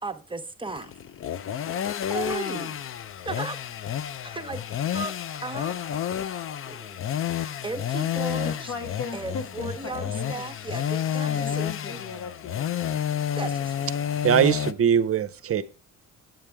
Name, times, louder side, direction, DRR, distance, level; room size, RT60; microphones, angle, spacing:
voice 1, 0.0-0.9 2.1-2.8 3.2-3.6 4.1-6.0 6.6-7.0 7.3-8.7 9.1-12.0 13.3-13.9, right 3 dB, 15° right, 0.9 m, -36 dB
sound 1, 0.7-14.7, left 9 dB, 45° left, 0.5 m, -30 dB
voice 2, 8.4-10.4 11.2-12.9, left 5 dB, 70° left, 1.6 m, -37 dB
voice 3, 14.2-15.6, right 8 dB, 50° right, 0.7 m, -21 dB
8.9 x 7.3 x 3.4 m
cardioid pair, 90°, 30 cm